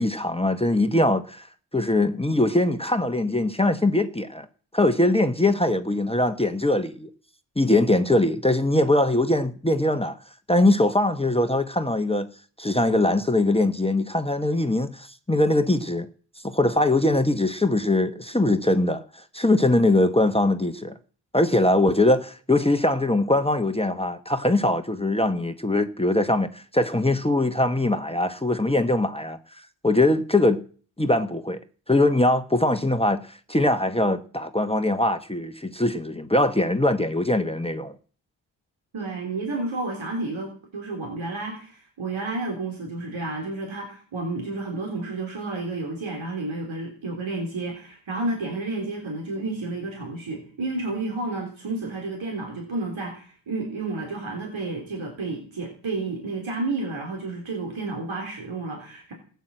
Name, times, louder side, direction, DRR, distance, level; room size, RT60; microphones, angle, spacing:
voice 1, 0.0-1.5 1.7-4.5 4.7-7.1 7.6-10.2 10.5-12.3 12.6-16.1 16.4-20.9 21.3-29.4 29.8-30.6 31.0-31.6 31.9-37.9, left 1 dB, 10° left, 1.1 m, -22 dB
voice 2, 38.9-59.1, right 2 dB, 85° right, 3.7 m, -31 dB
15.0 x 9.4 x 7.5 m
cardioid pair, 50°, 46 cm